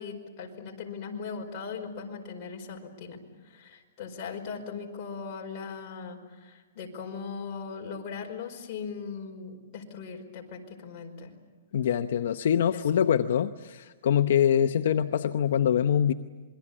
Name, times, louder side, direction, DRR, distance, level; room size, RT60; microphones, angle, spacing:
voice 1, 0.0-11.3 12.7-12.8, left 5 dB, 35° left, 0 dB, 5.1 m, -39 dB
voice 2, 11.7-16.1, left 9 dB, 65° left, 8 dB, 0.8 m, -24 dB
27.0 x 22.5 x 8.7 m, 1.4 s
hypercardioid pair, 160°, 0 cm